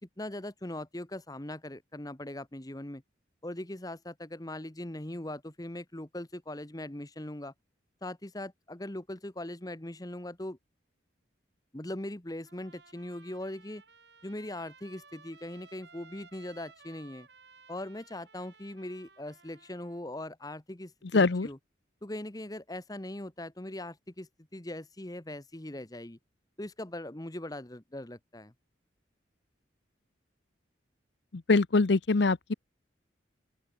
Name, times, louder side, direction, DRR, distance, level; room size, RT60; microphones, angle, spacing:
voice 1, 0.0-3.0 3.4-7.5 8.0-10.6 11.7-13.8 14.2-17.3 17.7-21.6 22.0-26.2 26.6-28.5, left 1 dB, 20° left, 1.2 m, -40 dB
Trumpet, 12.4-20.0, right 4 dB, 60° right, 7.7 m, -58 dB
voice 2, 21.1-21.5 31.3-32.5, left 3 dB, 65° left, 0.7 m, -24 dB
open air
head